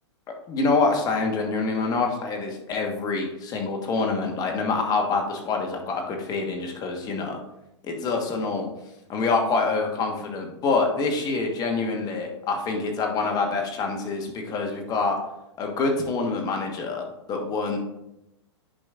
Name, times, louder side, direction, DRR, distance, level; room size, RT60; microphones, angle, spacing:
voice 1, 0.5-7.4 7.8-8.7 9.1-15.2 15.6-17.8, left 3 dB, 25° left, 2 dB, 1.3 m, -26 dB
10.0 x 5.1 x 2.5 m, 0.88 s
hypercardioid pair, 130°, 15 cm